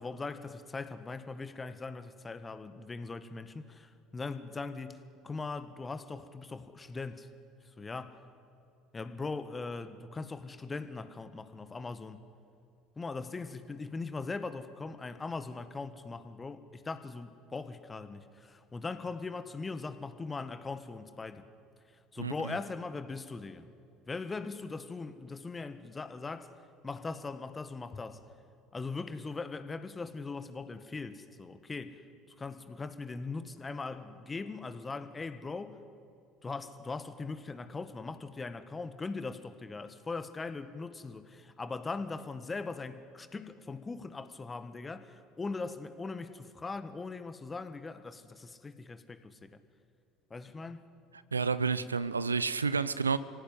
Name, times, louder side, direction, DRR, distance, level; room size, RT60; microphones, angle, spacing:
voice 1, 0.0-7.3 7.8-8.2 8.9-12.2 12.9-21.5 22.1-23.7 24.1-26.5 26.8-28.2 28.7-32.0 32.4-35.8 36.4-49.5 50.3-50.8, left 3 dB, 25° left, 1.7 m, -40 dB
voice 2, 22.2-22.6 51.3-53.2, right 5 dB, 90° right, 0.6 m, -30 dB
25.0 x 17.0 x 9.6 m
figure-of-eight pair, 65°, 0 cm